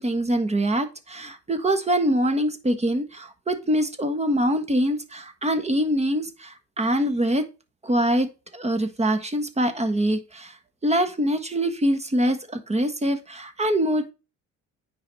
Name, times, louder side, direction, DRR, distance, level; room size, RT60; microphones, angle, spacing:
voice 1, 0.0-7.4 7.8-10.5 10.8-14.1, right 1 dB, 20° right, 1.5 m, -24 dB
9.3 x 4.8 x 4.1 m
cardioid pair, 90°, 30 cm